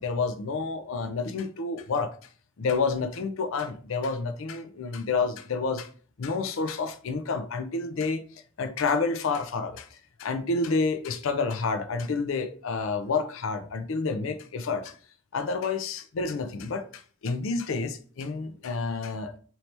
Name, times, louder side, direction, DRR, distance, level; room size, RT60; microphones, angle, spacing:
voice 1, 0.0-2.1 2.6-5.9 6.2-8.2 8.6-15.0 15.3-19.4, left 4 dB, 70° left, 0.4 m, -29 dB
4.3 x 2.8 x 3.2 m
head